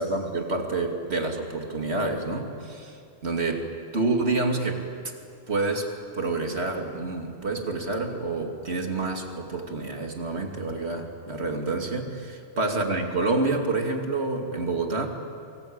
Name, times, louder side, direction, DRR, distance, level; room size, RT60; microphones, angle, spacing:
voice 1, 0.0-3.7 3.9-4.8 5.5-15.1, right 3 dB, 75° right, 3 dB, 2.8 m, -28 dB
24.5 x 24.5 x 8.8 m, 2.5 s
omnidirectional pair, 1.1 m